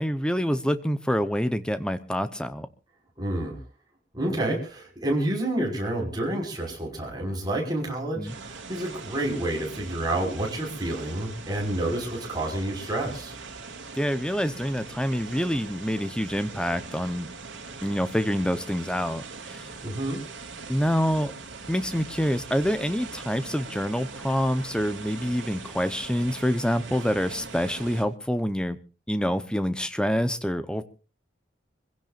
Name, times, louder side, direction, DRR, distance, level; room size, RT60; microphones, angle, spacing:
voice 1, 0.0-2.7 8.2-8.3 14.0-17.3 17.8-19.7 20.7-21.3 21.7-28.8 29.1-30.8, equal, 5° left, 11 dB, 0.9 m, -26 dB
voice 2, 3.2-3.6 4.1-13.3 19.8-20.2, right 1 dB, 20° right, -1 dB, 5.7 m, -29 dB
sound 1, 8.3-28.0, right 4 dB, 80° right, 2.9 m, -41 dB
26.0 x 16.5 x 2.6 m, 0.33 s
head